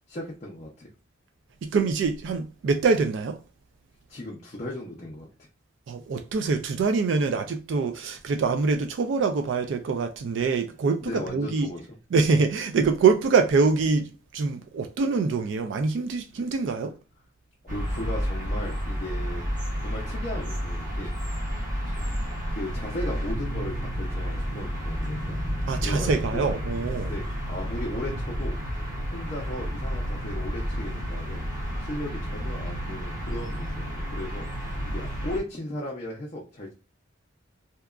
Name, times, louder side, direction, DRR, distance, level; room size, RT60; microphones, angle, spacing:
voice 1, 0.1-0.9 4.1-5.3 11.0-11.9 17.6-19.4 19.8-21.1 22.5-25.4 25.8-26.4 27.0-28.5 29.1-31.5 31.8-34.5 34.8-36.7, left 1 dB, 35° left, 0.5 m, -36 dB
voice 2, 1.6-3.4 5.9-11.7 12.1-16.9 25.7-27.1, right 4 dB, 60° right, 0.3 m, -24 dB
sound 1, 17.7-35.4, equal, 40° right, 0.8 m, -31 dB
2.8 x 2.3 x 2.3 m
head